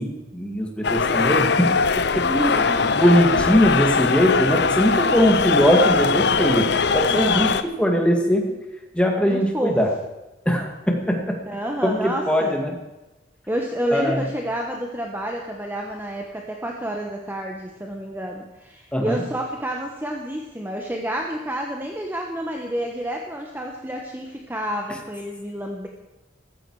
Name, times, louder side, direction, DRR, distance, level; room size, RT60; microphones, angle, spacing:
voice 1, 0.0-2.3 2.9-7.5 7.8-8.6 8.9-9.9 10.5-11.4 11.8-12.7 13.9-14.3 18.9-19.2 24.9-25.0, equal, 5° left, 2 dB, 2.1 m, -21 dB
sound 1, 0.8-7.6, left 5 dB, 60° left, 0.7 m, -21 dB
voice 2, 2.2-3.0 7.1-7.6 9.2-9.8 11.5-12.6 13.5-25.9, right 1 dB, 10° right, 1 dB, 1.1 m, -29 dB
14.5 x 14.5 x 4.8 m, 1.0 s
head